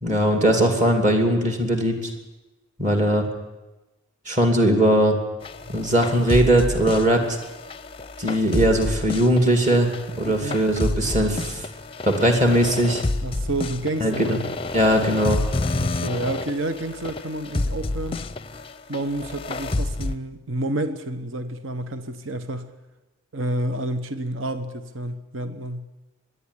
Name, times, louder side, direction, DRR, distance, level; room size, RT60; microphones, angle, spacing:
voice 1, 0.0-2.0 2.8-3.2 4.3-5.2 5.7-7.4 8.2-11.7 12.0-13.0 14.0-14.4 14.7-15.4, right 1 dB, 35° right, 2.6 m, -20 dB
sound 1, 5.4-20.2, left 2 dB, 25° left, 0.6 m, -29 dB
voice 2, 10.3-10.6 13.2-14.4 15.7-18.2 18.9-22.7 23.3-25.9, right 1 dB, 70° right, 1.1 m, -29 dB
24.5 x 11.0 x 9.9 m
head